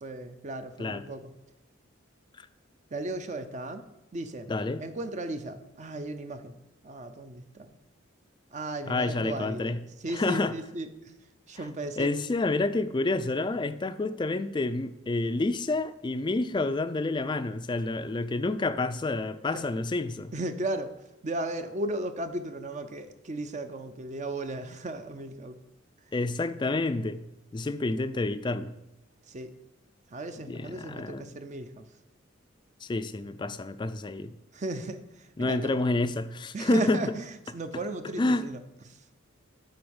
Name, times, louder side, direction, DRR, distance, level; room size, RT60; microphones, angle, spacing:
voice 1, 0.0-1.3 2.9-3.8 4.1-4.5 4.8-6.5 6.8-7.8 8.5-11.1 11.5-12.2 19.5-19.6 20.3-20.9 21.2-25.6 29.3-29.5 30.1-31.9 34.5-35.8 36.5-38.6 38.9-39.0, right 2 dB, 35° right, 9 dB, 0.5 m, -36 dB
voice 2, 4.5-4.8 8.9-9.8 10.1-10.5 12.0-20.3 26.1-27.2 27.5-28.7 30.5-31.3 32.8-34.3 35.4-37.1 38.2-38.5, left 2 dB, 25° left, 12 dB, 0.4 m, -29 dB
7.7 x 4.4 x 7.1 m, 0.91 s
head